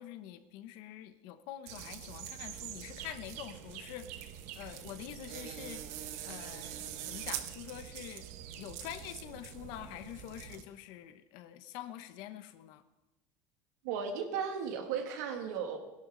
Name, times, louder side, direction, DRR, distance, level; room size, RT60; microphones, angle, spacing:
voice 1, 0.0-4.3 4.5-5.8 6.2-8.3 8.6-12.8, left 12 dB, 55° left, 11 dB, 0.9 m, -46 dB
sound 1, 1.6-10.6, right 10 dB, 70° right, 1.1 m, -44 dB
voice 2, 13.8-15.8, right 7 dB, 90° right, 4 dB, 2.3 m, -35 dB
21.0 x 11.5 x 3.9 m, 1.0 s
cardioid pair, 180°, 9 cm